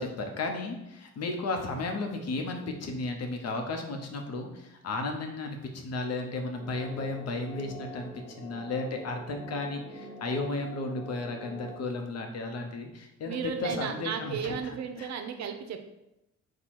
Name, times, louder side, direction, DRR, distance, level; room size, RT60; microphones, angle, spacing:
voice 1, 0.0-14.5 15.0-15.1, left 2 dB, 55° left, 3 dB, 0.8 m, -34 dB
sound 1, 6.6-11.8, left 1 dB, 25° right, 0.8 m, -45 dB
voice 2, 13.2-15.8, right 7 dB, 65° right, 6 dB, 0.6 m, -34 dB
4.3 x 2.3 x 4.6 m, 0.89 s
cardioid pair, 90°, 30 cm